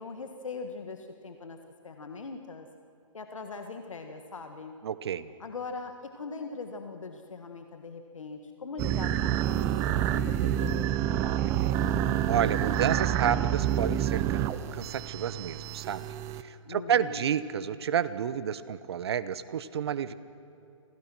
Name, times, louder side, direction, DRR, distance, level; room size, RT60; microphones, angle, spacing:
voice 1, 0.0-1.6 1.8-2.7 3.1-4.7 5.4-11.9 16.6-17.4, left 4 dB, 75° left, 6 dB, 1.7 m, -41 dB
voice 2, 4.8-5.3 12.3-16.0 16.4-20.1, right 8 dB, 50° right, 15 dB, 1.0 m, -30 dB
sound 1, 8.8-16.4, right 11 dB, 15° right, 0.5 m, -28 dB
27.0 x 16.5 x 6.2 m, 2.7 s
hypercardioid pair, 140°, 17 cm